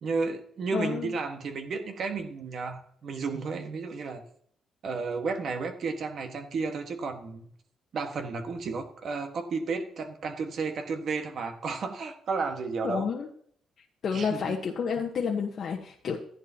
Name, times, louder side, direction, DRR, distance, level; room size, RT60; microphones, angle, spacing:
voice 1, 0.0-4.2 4.8-7.5 7.9-13.1 14.1-14.5, right 4 dB, 60° right, 6 dB, 1.6 m, -32 dB
voice 2, 0.7-1.1 12.8-13.3 14.0-16.2, left 6 dB, 60° left, 0 dB, 1.1 m, -30 dB
13.5 x 10.5 x 2.9 m, 0.64 s
cardioid pair, 90°, 0 cm